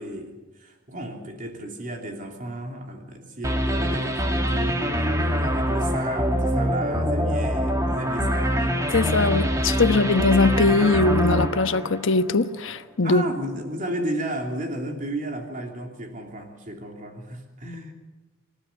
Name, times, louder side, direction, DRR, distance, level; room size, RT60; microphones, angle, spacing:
voice 1, 0.0-8.8 13.0-17.9, right 1 dB, 40° right, 3.1 m, -34 dB
sound 1, 3.4-12.5, equal, 15° right, 1.9 m, -24 dB
voice 2, 8.9-13.2, left 3 dB, 65° left, 1.1 m, -21 dB
26.0 x 15.5 x 8.2 m
head